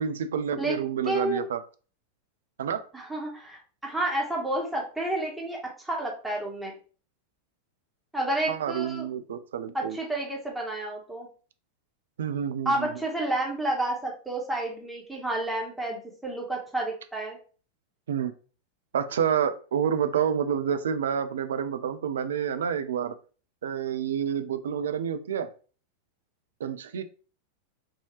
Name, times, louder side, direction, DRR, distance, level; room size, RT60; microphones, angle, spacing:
voice 1, 0.0-1.6 2.6-2.8 8.5-10.0 12.2-12.9 18.1-18.3 18.9-23.2 23.6-25.5 26.6-27.0, right 8 dB, 65° right, 11 dB, 0.4 m, -28 dB
voice 2, 1.1-1.4 2.9-5.6 5.8-6.7 8.1-9.1 9.7-11.3 12.6-17.4, right 1 dB, 5° right, -2 dB, 1.3 m, -30 dB
4.7 x 2.7 x 3.0 m, 0.39 s
figure-of-eight pair, 90°, 0 cm